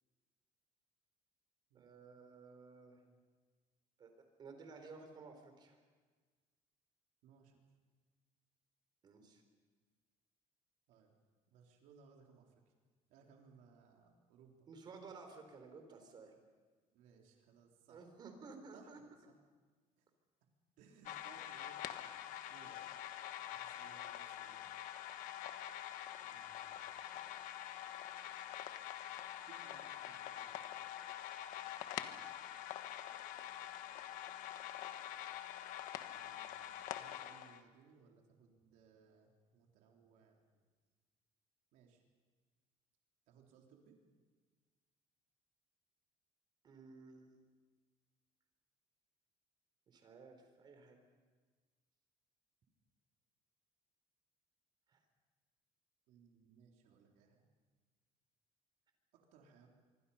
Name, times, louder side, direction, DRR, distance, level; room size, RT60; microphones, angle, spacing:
voice 1, 1.7-3.0 4.0-4.1 4.4-5.8 9.0-9.4 14.7-16.3 17.9-19.0 27.1-27.2 46.6-47.4 49.9-51.0 54.9-55.0, right 4 dB, 35° right, 5 dB, 3.7 m, -55 dB
voice 2, 7.2-7.6 10.9-11.2 11.5-12.7 13.1-14.7 16.9-18.1 18.7-19.4 20.0-20.1 20.8-21.8 22.0-22.9 23.5-24.6 26.2-26.8 29.4-30.6 36.0-40.4 41.7-42.0 43.3-44.0 56.1-57.5 59.3-59.7, right 6 dB, 80° right, 1 dB, 3.6 m, -65 dB
sound 1, 21.0-37.6, left 11 dB, 80° left, 1.3 m, -46 dB
25.5 x 24.5 x 5.6 m, 1.4 s
cardioid pair, 175°, 13 cm